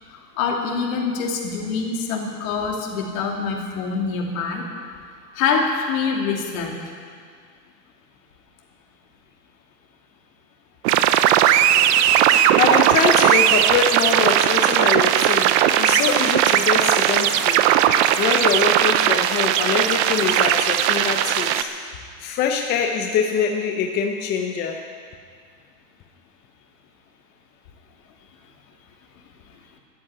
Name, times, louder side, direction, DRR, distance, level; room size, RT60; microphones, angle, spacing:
voice 1, 0.1-4.6 5.4-6.8, left 5 dB, 55° left, 0 dB, 2.8 m, -25 dB
sound 1, 10.8-21.6, right 11 dB, 45° right, 0.7 m, -18 dB
voice 2, 12.3-17.6 18.2-21.7 22.2-24.9, left 6 dB, 20° left, 3 dB, 0.6 m, -24 dB
13.5 x 8.6 x 9.5 m, 2.1 s
supercardioid pair, 145°, 49 cm